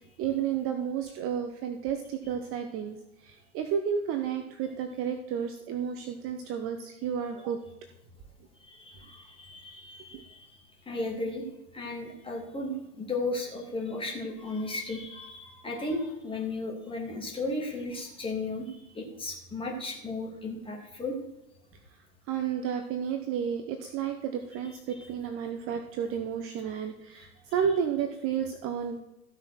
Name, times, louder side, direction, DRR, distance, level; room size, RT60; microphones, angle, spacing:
voice 1, 0.2-7.6 10.1-10.2 22.3-29.0, right 8 dB, 30° right, 6 dB, 1.0 m, -32 dB
voice 2, 8.6-11.4 11.7-21.1, left 2 dB, 10° left, 0 dB, 2.9 m, -35 dB
14.5 x 6.1 x 6.2 m, 0.95 s
hypercardioid pair, 125°, 45 cm